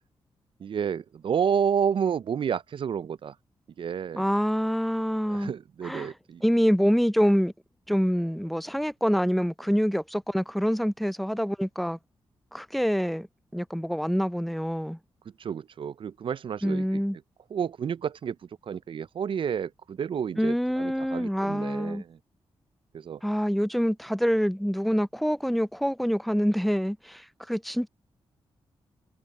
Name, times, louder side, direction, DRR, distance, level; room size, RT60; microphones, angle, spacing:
voice 1, 0.6-3.3 3.8-4.2 5.3-6.4 15.4-17.0 17.5-18.4 18.6-22.2 22.9-23.2, right 7 dB, 55° right, 0.4 m, -30 dB
voice 2, 4.1-5.5 5.8-6.1 6.4-7.5 7.9-12.0 12.5-13.3 13.5-15.0 16.6-17.2 20.4-22.0 23.2-27.9, equal, ahead, 0.5 m, -26 dB
cardioid pair, 75°, 10 cm